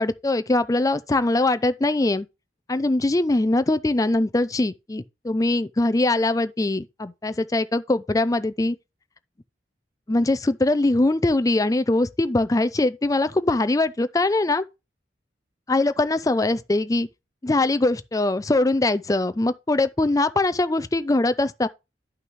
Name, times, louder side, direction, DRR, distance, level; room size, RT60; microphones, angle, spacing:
voice 1, 0.0-2.3 2.7-8.8 10.1-14.6 15.7-17.1 17.4-21.7, left 2 dB, 20° left, 0.4 m, -22 dB
11.0 x 5.8 x 3.1 m
head